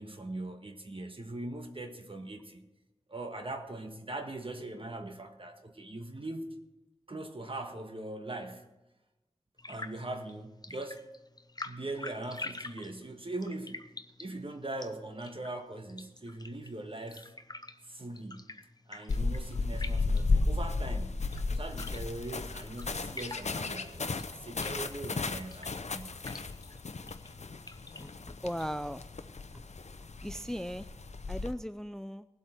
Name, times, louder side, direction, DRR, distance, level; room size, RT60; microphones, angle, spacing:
voice 1, 0.0-2.7 3.1-6.5 7.1-8.6 9.7-11.0 11.6-13.9 14.2-17.3 17.8-18.5 18.9-21.2 21.5-26.2, right 2 dB, 50° right, 5 dB, 1.5 m, -41 dB
sound 1, 9.6-28.7, left 2 dB, 35° left, 0.8 m, -48 dB
sound 2, 19.1-31.5, left 3 dB, 85° left, 0.6 m, -34 dB
voice 2, 28.0-29.0 30.2-30.9 31.3-32.3, equal, 5° left, 13 dB, 0.4 m, -38 dB
19.0 x 7.9 x 4.4 m, 1.0 s
wide cardioid pair, 50°, 11 cm